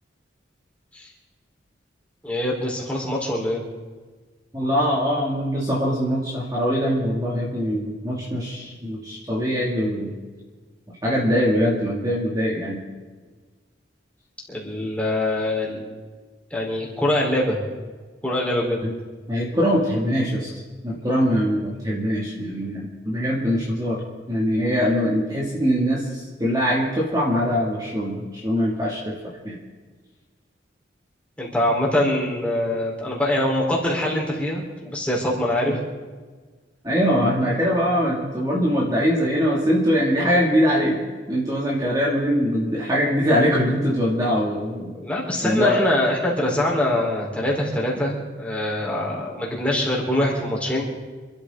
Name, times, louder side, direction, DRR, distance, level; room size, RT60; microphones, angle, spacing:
voice 1, 2.2-3.6 14.5-15.8 16.5-17.6 18.2-18.8 31.4-35.8 45.0-50.8, left 1 dB, 5° left, -4 dB, 4.1 m, -23 dB
voice 2, 4.5-10.2 11.0-12.8 18.8-18.9 19.3-20.5 20.8-24.0 24.3-29.1 29.4-29.6 36.8-41.0 41.3-44.9 45.4-45.8, equal, 20° right, -5 dB, 2.5 m, -22 dB
27.5 x 13.5 x 3.9 m, 1.4 s
head